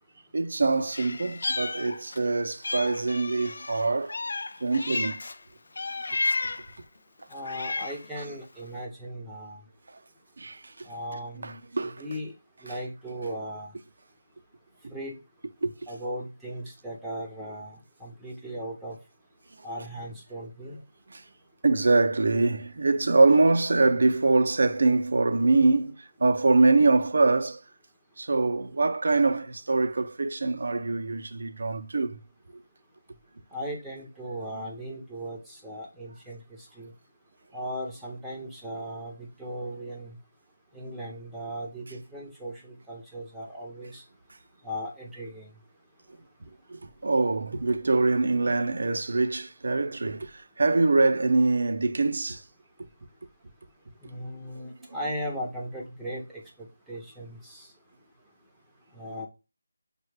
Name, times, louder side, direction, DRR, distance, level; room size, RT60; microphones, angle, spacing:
voice 1, 0.3-4.1 4.6-5.2 10.4-10.6 11.4-12.0 15.6-15.7 21.1-21.2 21.6-25.9 26.2-27.6 28.2-32.2 46.7-50.3 50.6-52.4 54.6-54.7, right 3 dB, 60° right, 0.5 m, -24 dB
Meow, 0.9-2.3 2.6-5.4 5.8-6.8 7.3-8.1, left 3 dB, 60° left, 0.3 m, -32 dB
voice 2, 7.3-9.6 10.9-11.5 11.8-12.3 12.6-13.7 14.9-15.2 15.9-19.0 19.6-20.8 33.5-36.4 36.8-36.9 37.5-40.2 40.7-44.0 44.6-45.5 54.0-56.4 56.9-57.7 58.9-59.3, equal, 5° right, 0.6 m, -37 dB
5.4 x 2.2 x 3.2 m
figure-of-eight pair, 165°, 0 cm